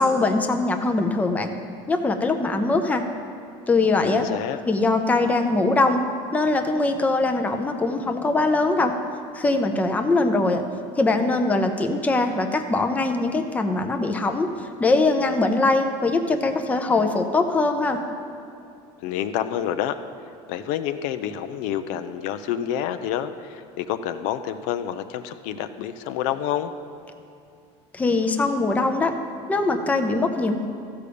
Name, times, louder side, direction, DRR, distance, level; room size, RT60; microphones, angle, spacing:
voice 1, 0.0-1.5 1.9-3.0 3.7-4.3 4.6-6.0 6.3-8.9 9.3-10.6 11.0-14.5 14.8-18.0 27.9-29.2 29.5-30.6, left 3 dB, 10° left, 5 dB, 0.6 m, -22 dB
voice 2, 4.0-4.6 19.0-20.0 20.5-26.7, left 10 dB, 70° left, 10 dB, 0.5 m, -28 dB
14.0 x 5.1 x 6.8 m, 2.6 s
cardioid pair, 150°, 14 cm